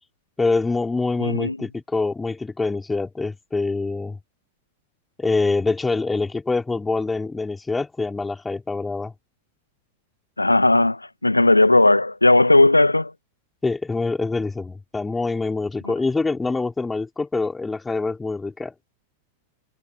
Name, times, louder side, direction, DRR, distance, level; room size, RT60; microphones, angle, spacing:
voice 1, 0.4-4.2 5.2-9.1 13.6-18.7, left 3 dB, 10° left, 4.1 m, -25 dB
voice 2, 1.2-1.6 10.4-13.1, left 2 dB, 85° left, 2.0 m, -16 dB
figure-of-eight pair, 90°, 0 cm